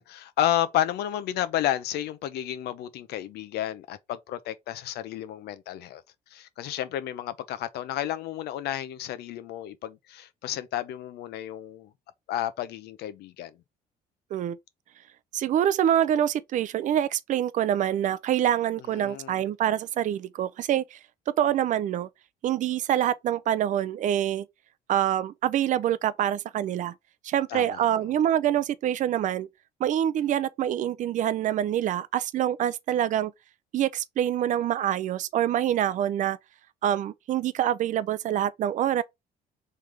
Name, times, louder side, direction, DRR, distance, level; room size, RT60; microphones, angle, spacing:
voice 1, 0.0-6.0 6.3-11.9 12.3-13.5 18.9-19.4 27.5-27.8, left 12 dB, 75° left, 0.6 m, -31 dB
voice 2, 15.3-21.0 21.4-22.1 22.4-24.5 24.9-26.9 27.2-29.5 29.8-33.3 33.7-36.4 36.8-39.0, right 11 dB, 50° right, 0.4 m, -25 dB
3.3 x 3.2 x 3.6 m
cardioid pair, 110°, 17 cm